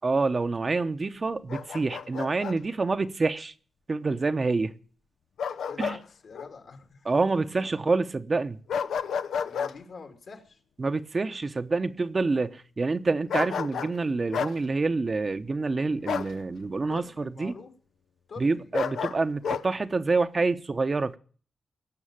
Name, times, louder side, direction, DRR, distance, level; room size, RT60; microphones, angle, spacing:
voice 1, 0.0-3.5 3.9-4.7 5.8-6.0 7.0-8.6 10.8-17.5 18.4-21.2, right 3 dB, 40° right, 0.9 m, -27 dB
Bark, 1.5-2.6 5.4-6.0 6.3-6.5 8.7-9.7 13.3-14.0 14.3-14.6 16.1-16.3 18.7-19.6, left 7 dB, 85° left, 0.7 m, -31 dB
voice 2, 5.7-6.0 6.2-7.1 7.5-7.6 9.4-10.6 16.9-17.7 18.3-18.7, left 5 dB, 70° left, 2.9 m, -44 dB
17.5 x 6.3 x 9.0 m
cardioid pair, 75°, 0 cm